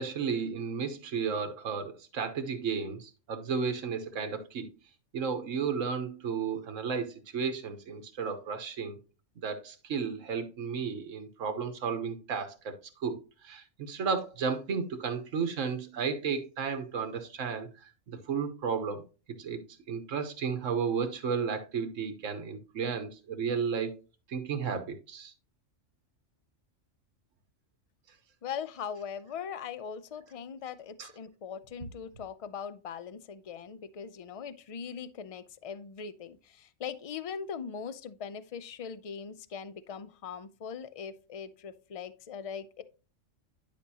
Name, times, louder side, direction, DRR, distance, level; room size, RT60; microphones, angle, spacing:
voice 1, 0.0-4.7 5.1-9.0 9.4-12.7 13.0-17.7 18.1-19.0 19.3-24.0 24.3-25.3 31.0-31.1, right 6 dB, 80° right, 1.4 m, -33 dB
voice 2, 28.4-42.8, left 7 dB, 60° left, 0.3 m, -40 dB
10.5 x 5.3 x 2.8 m
omnidirectional pair, 1.3 m